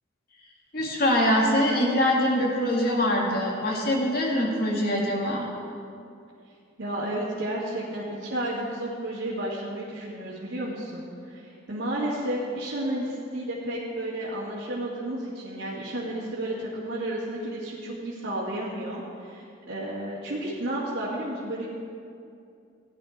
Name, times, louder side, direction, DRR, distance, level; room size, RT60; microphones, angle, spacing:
voice 1, 0.7-5.4, left 1 dB, 50° left, -2 dB, 2.0 m, -23 dB
voice 2, 6.8-21.7, right 1 dB, 90° right, -8 dB, 2.1 m, -32 dB
16.5 x 10.0 x 3.6 m, 2.5 s
head